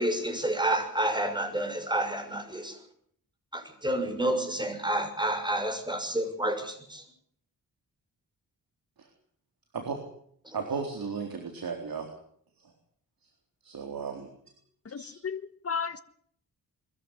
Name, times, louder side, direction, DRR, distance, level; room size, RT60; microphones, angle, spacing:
voice 1, 0.0-2.8 3.5-7.0 10.4-10.6, right 1 dB, 10° right, 6.4 m, -29 dB
voice 2, 10.5-12.1 12.6-12.7 13.6-14.3 15.0-15.1, right 5 dB, 70° right, 4.0 m, -35 dB
voice 3, 14.8-16.0, left 6 dB, 40° left, 1.5 m, -34 dB
22.5 x 14.0 x 9.8 m
cardioid pair, 75°, 37 cm